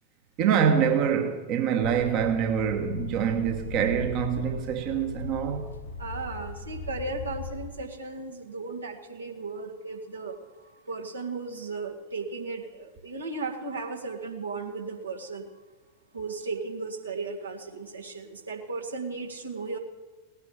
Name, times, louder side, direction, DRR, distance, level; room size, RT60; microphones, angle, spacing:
voice 1, 0.4-5.7, right 8 dB, 40° right, 1.2 m, -25 dB
sound 1, 1.8-7.7, left 3 dB, 75° left, 1.7 m, -38 dB
voice 2, 6.0-15.5 16.1-19.8, right 3 dB, 75° right, 1.9 m, -36 dB
17.5 x 9.6 x 7.2 m
figure-of-eight pair, 90°, 0 cm